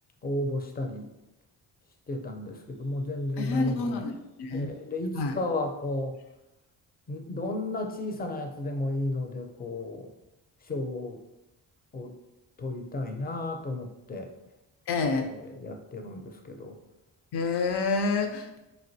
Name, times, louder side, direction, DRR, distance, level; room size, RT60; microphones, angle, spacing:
voice 1, 0.2-1.1 2.1-4.0 4.5-6.2 7.1-10.1 10.6-11.2 11.9-12.2 12.6-14.3 15.1-16.8, left 2 dB, 20° left, 4 dB, 0.5 m, -33 dB
voice 2, 3.4-4.1 4.4-4.7 5.1-5.4 14.9-15.3 17.3-18.6, left 4 dB, 65° left, 6 dB, 0.6 m, -28 dB
3.3 x 2.6 x 2.6 m, 0.94 s
supercardioid pair, 55°, 44 cm